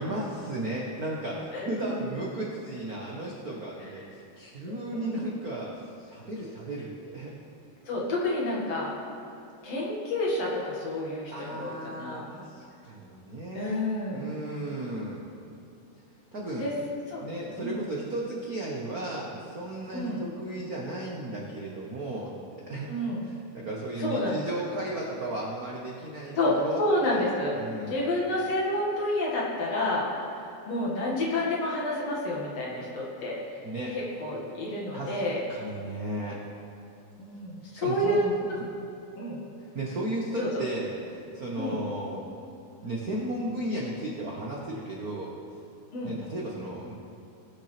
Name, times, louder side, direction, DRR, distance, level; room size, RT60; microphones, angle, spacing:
voice 1, 0.0-7.3 11.3-13.8 14.1-15.2 16.3-16.7 17.2-22.9 23.2-27.2 27.5-28.0 33.6-33.9 34.9-35.2 35.5-36.4 37.7-38.7 39.6-42.2 42.8-45.3 46.0-46.9, right 1 dB, 75° right, -3 dB, 0.8 m, -35 dB
voice 2, 1.5-2.0 4.7-5.2 7.8-8.9 9.6-12.3 13.5-14.3 16.6-16.7 17.1-17.2 17.6-17.8 19.9-20.2 22.9-23.3 24.0-24.4 26.4-27.5 27.9-30.0 30.7-33.4 33.9-35.4 37.2-38.2 39.2-39.4 40.4-40.5 41.6-41.8 45.9-46.1, left 1 dB, 55° left, -4 dB, 2.8 m, -29 dB
19.0 x 6.7 x 3.3 m, 2.9 s
omnidirectional pair, 3.5 m